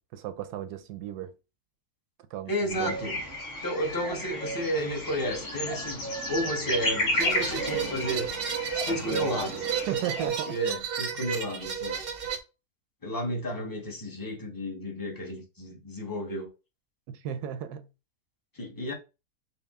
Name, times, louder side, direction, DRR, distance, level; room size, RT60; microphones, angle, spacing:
voice 1, 0.0-1.3 2.3-3.0 8.9-9.3 9.9-10.8 11.2-11.3 17.1-17.9, right 10 dB, 85° right, 1.1 m, -35 dB
voice 2, 2.5-3.2 3.6-8.3 8.7-9.6 10.5-12.0 13.0-16.5 18.5-18.9, equal, 25° left, 0.5 m, -32 dB
sound 1, 2.7-10.3, left 1 dB, 45° left, 1.7 m, -33 dB
sound 2, 7.2-12.4, right 7 dB, 55° right, 0.7 m, -32 dB
5.4 x 2.0 x 3.4 m
omnidirectional pair, 1.6 m